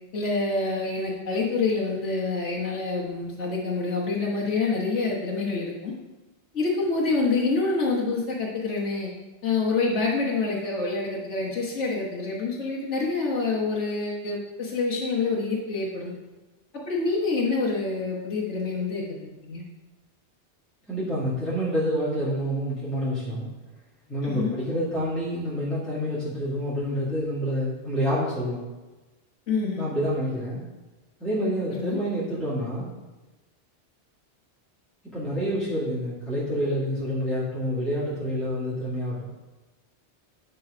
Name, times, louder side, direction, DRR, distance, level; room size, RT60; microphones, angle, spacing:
voice 1, 0.1-5.9 6.5-9.1 9.4-16.1 16.9-19.0 19.4-19.6 24.2-24.5 29.5-29.9 31.7-32.0, left 3 dB, 90° left, -6 dB, 1.6 m, -27 dB
voice 2, 20.9-23.5 24.1-28.6 29.8-30.6 31.2-32.9 35.1-39.2, equal, ahead, -10 dB, 2.2 m, -28 dB
10.5 x 3.9 x 4.9 m, 1.1 s
omnidirectional pair, 1.2 m